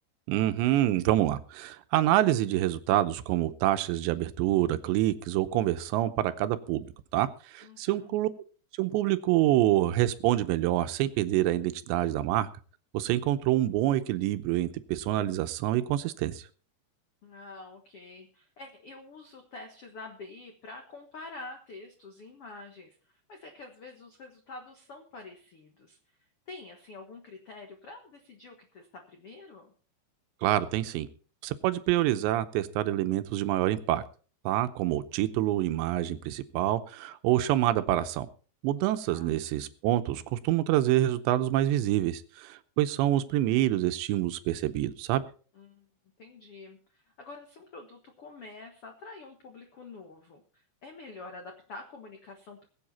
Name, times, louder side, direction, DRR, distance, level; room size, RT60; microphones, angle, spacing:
voice 1, 0.3-8.3 8.8-12.5 12.9-16.4 30.4-31.1 31.4-34.0 34.5-38.3 38.6-45.2, right 14 dB, 85° right, 12 dB, 3.0 m, -27 dB
voice 2, 7.6-8.1 17.2-26.0 26.5-29.7 39.1-39.3 45.5-45.8 46.2-52.6, left 3 dB, 75° left, 4 dB, 1.3 m, -47 dB
21.5 x 8.0 x 4.2 m, 0.41 s
omnidirectional pair, 5.0 m